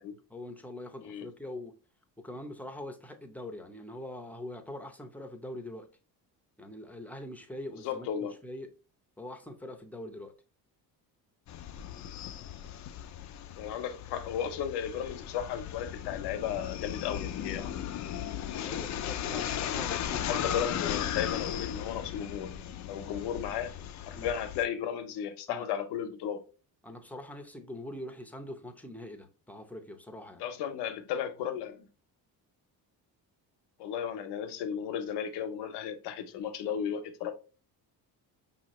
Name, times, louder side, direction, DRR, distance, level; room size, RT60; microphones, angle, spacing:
voice 1, 0.3-1.7 2.2-5.9 6.6-8.1 8.4-8.7 9.2-10.3 18.6-20.5 24.1-24.3 25.5-25.7 26.8-30.4, left 1 dB, 5° left, 0.6 m, -43 dB
voice 2, 7.7-8.4 13.5-17.7 20.3-22.5 22.9-23.7 24.1-26.4 30.4-31.9 33.8-37.3, left 8 dB, 90° left, 0.8 m, -34 dB
sound 1, 11.5-24.6, left 10 dB, 45° left, 0.4 m, -36 dB
5.6 x 2.8 x 3.0 m
cardioid pair, 120°, 39 cm